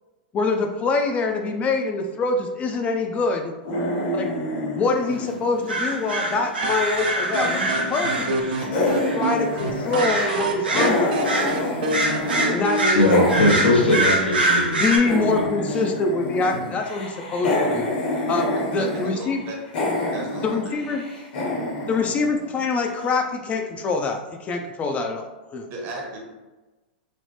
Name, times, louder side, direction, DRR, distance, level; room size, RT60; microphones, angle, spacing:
voice 1, 0.3-3.5 4.1-4.3 4.7-8.5 9.1-11.8 12.5-13.1 14.8-17.9 18.3-19.4 20.4-21.0 21.9-25.7, left 3 dB, 25° left, 3 dB, 0.3 m, -25 dB
sound 1, 3.6-6.7 7.0-8.3 8.6-12.5 12.8-22.9, left 2 dB, 60° left, 1.1 m, -28 dB
sound 2, 5.7-8.6 9.0-9.2 10.0-10.4 10.6-11.5 11.9-15.0, right 1 dB, 90° right, 0.8 m, -24 dB
sound 3, 6.6-14.2, right 3 dB, 65° right, 0.4 m, -29 dB
voice 2, 12.9-15.7, left 1 dB, 90° left, -1 dB, 0.7 m, -21 dB
voice 3, 18.8-19.6 20.1-21.0 21.9-22.0 25.7-26.2, right 1 dB, 45° right, 0 dB, 0.8 m, -35 dB
3.1 x 2.0 x 3.0 m, 1.2 s
hypercardioid pair, 105°, 5 cm